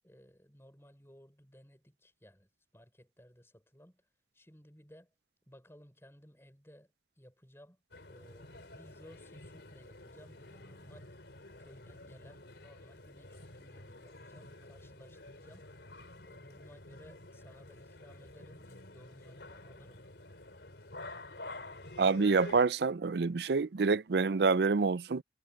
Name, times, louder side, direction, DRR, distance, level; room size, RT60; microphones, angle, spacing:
voice 1, 0.0-4.0 4.3-5.1 5.5-6.9 7.2-7.8 8.1-11.1 11.6-15.7 16.2-20.0, equal, 15° left, 6.0 m, -58 dB
sound 1, 7.9-22.6, left 2 dB, 75° left, 3.6 m, -50 dB
voice 2, 22.0-25.2, right 4 dB, 70° right, 0.5 m, -27 dB
head